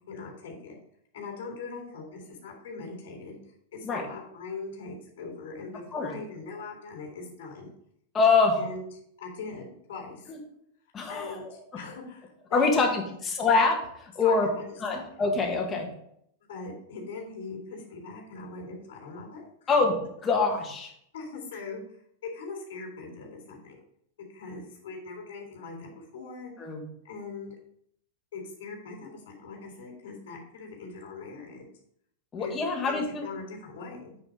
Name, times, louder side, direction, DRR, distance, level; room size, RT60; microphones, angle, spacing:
voice 1, 0.1-0.7 1.1-3.4 3.7-7.7 8.6-8.9 9.2-10.3 11.1-13.2 14.2-15.0 16.5-19.8 21.1-21.8 22.2-23.8 24.3-26.7 27.0-27.5 28.3-31.7 32.4-32.5 32.9-34.1, left 4 dB, 80° left, 0 dB, 3.6 m, -41 dB
voice 2, 8.1-8.6 10.3-10.4 10.9-11.5 12.5-14.5 14.8-15.9 19.7-20.9 26.6-26.8 32.3-33.3, left 4 dB, 15° left, 1 dB, 1.6 m, -25 dB
9.0 x 4.2 x 5.2 m, 0.70 s
supercardioid pair, 160°, 0 cm